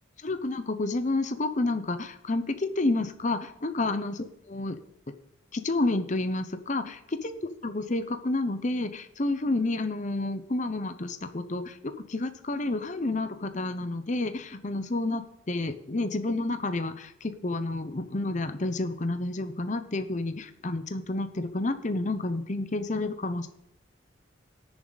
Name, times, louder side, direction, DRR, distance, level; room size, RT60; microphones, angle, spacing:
voice 1, 0.2-4.8 5.5-23.5, left 2 dB, 35° left, 9 dB, 0.8 m, -30 dB
19.5 x 7.1 x 4.0 m, 0.74 s
head